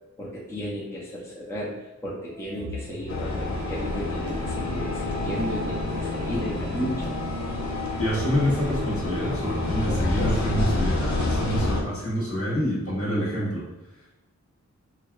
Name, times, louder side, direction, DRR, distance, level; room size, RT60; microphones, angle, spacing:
voice 1, 0.2-1.7 2.0-7.1, equal, 10° left, -6 dB, 0.7 m, -34 dB
sound 1, 2.3-10.9, equal, 35° right, 0.6 m, -41 dB
sound 2, 3.1-11.8, left 2 dB, 70° left, 0.6 m, -28 dB
sound 3, 4.3-12.3, right 3 dB, 85° right, 0.6 m, -40 dB
voice 2, 8.0-13.6, equal, 50° left, -6 dB, 1.2 m, -27 dB
4.5 x 2.2 x 2.4 m, 1.0 s
wide cardioid pair, 90°, 29 cm